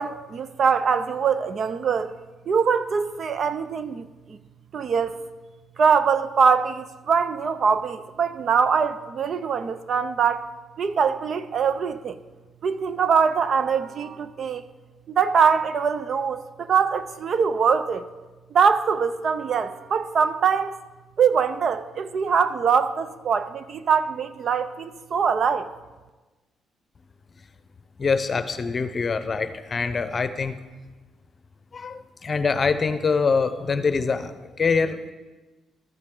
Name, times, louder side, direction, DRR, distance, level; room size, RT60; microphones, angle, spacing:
voice 1, 0.0-2.1 2.5-4.4 4.7-5.2 5.8-10.5 10.8-12.2 12.6-14.6 15.2-18.0 18.5-20.8 21.2-25.7, right 6 dB, 55° right, 0.6 m, -23 dB
voice 2, 28.0-30.6 31.7-34.3 34.6-35.1, left 5 dB, 40° left, 0.8 m, -24 dB
12.5 x 10.0 x 3.9 m
cardioid pair, 90°, 0 cm